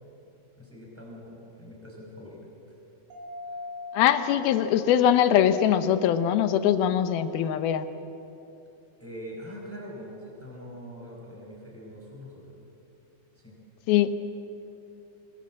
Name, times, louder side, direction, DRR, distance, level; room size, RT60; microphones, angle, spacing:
voice 1, 0.6-2.5 3.5-3.7 9.0-12.6 13.4-13.6, equal, 5° left, -2 dB, 5.3 m, -43 dB
Mallet percussion, 3.1-5.6, left 3 dB, 90° right, 4.2 m, -41 dB
voice 2, 3.9-7.9 13.9-14.1, left 10 dB, 85° left, 11 dB, 2.8 m, -22 dB
26.0 x 21.0 x 7.6 m, 2.9 s
omnidirectional pair, 4.2 m